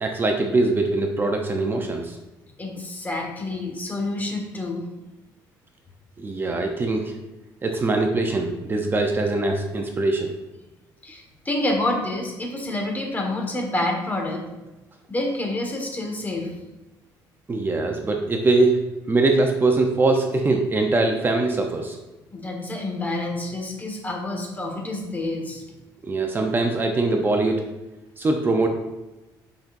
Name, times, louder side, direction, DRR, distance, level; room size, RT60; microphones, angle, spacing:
voice 1, 0.0-2.2 6.2-7.1 7.6-10.3 17.5-18.8 19.1-22.0 26.0-27.7 28.2-28.7, right 2 dB, 25° right, 3 dB, 0.6 m, -22 dB
voice 2, 2.6-4.8 11.0-14.4 15.1-16.5 22.3-25.6, left 2 dB, 20° left, 1 dB, 1.5 m, -28 dB
8.6 x 5.3 x 2.6 m, 1.0 s
cardioid pair, 105°, 8 cm